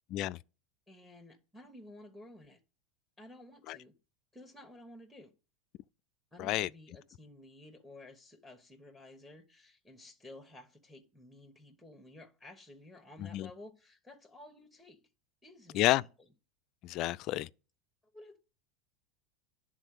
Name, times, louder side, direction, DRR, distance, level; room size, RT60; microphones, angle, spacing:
voice 1, 0.9-2.6 3.2-4.0 4.3-5.3 6.3-15.0 15.4-16.1 18.1-18.4, left 1 dB, ahead, 1.2 m, -53 dB
voice 2, 6.4-6.7 13.2-13.5 15.7-16.0 16.8-17.5, left 16 dB, 50° left, 0.3 m, -30 dB
10.0 x 3.8 x 6.5 m
supercardioid pair, 115°, 0 cm